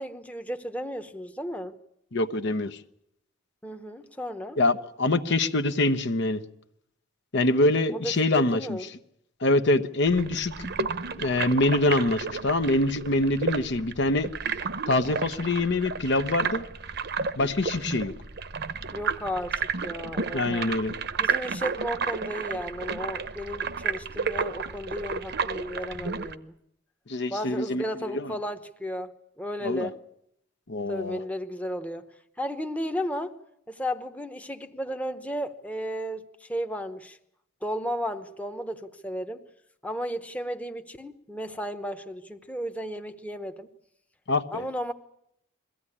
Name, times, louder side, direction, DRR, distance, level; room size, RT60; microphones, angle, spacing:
voice 1, 0.0-1.8 3.6-4.6 7.9-8.9 18.9-20.7 21.2-26.5 27.3-30.0 30.9-32.1 32.4-33.3 33.7-37.2 37.6-39.4 39.8-43.7 44.5-44.9, equal, 5° left, 0.9 m, -34 dB
voice 2, 2.1-2.8 4.6-6.4 7.3-8.9 9.4-10.7 11.2-14.3 14.9-16.6 17.4-18.1 20.3-20.9 27.1-28.3 29.6-29.9 30.7-31.2 44.3-44.6, left 2 dB, 55° left, 0.9 m, -25 dB
sound 1, 10.1-26.4, right 5 dB, 50° right, 0.8 m, -32 dB
22.5 x 16.0 x 9.8 m
head